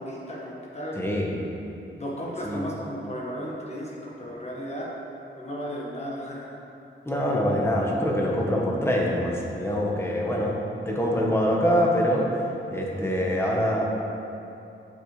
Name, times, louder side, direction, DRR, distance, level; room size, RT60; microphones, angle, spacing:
voice 1, 0.0-1.0 1.9-4.9 5.3-6.5, equal, 30° left, -4 dB, 1.4 m, -34 dB
voice 2, 0.9-1.4 2.4-2.7 7.1-10.6 10.9-12.3 12.7-13.8, equal, 10° left, -3 dB, 1.0 m, -24 dB
7.8 x 7.1 x 3.2 m, 2.9 s
wide cardioid pair, 140°, 21 cm